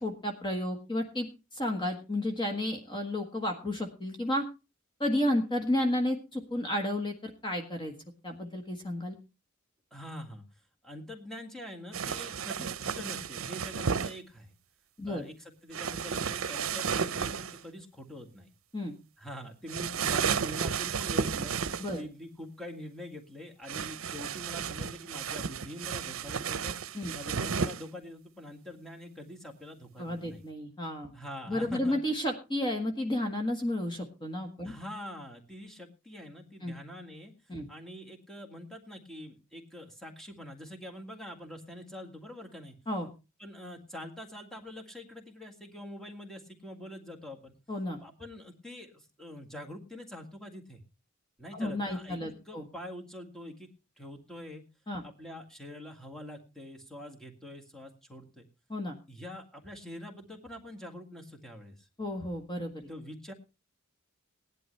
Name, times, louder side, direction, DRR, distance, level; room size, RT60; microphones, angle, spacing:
voice 1, 0.0-4.4 5.0-7.9 8.2-9.2 15.0-15.2 18.7-18.9 21.8-22.0 26.9-27.1 30.0-31.1 31.5-34.7 36.6-36.7 37.5-37.7 42.9-43.1 47.7-48.0 51.5-52.6 54.9-55.0 58.7-59.0 62.0-62.9, left 1 dB, 25° left, 3 dB, 1.5 m, -32 dB
voice 2, 9.9-10.4 10.8-14.5 15.0-18.5 19.2-30.4 31.1-32.0 34.6-37.3 37.7-42.8 43.4-47.5 48.0-50.8 51.4-53.7 54.0-54.6 55.0-58.5 59.1-61.9 62.9-63.3, left 1 dB, 5° left, 1 dB, 2.0 m, -45 dB
sound 1, 11.9-14.1 15.7-17.6 19.7-22.0 23.7-27.8, right 6 dB, 70° right, 0.7 m, -33 dB
18.0 x 11.0 x 3.2 m, 0.29 s
head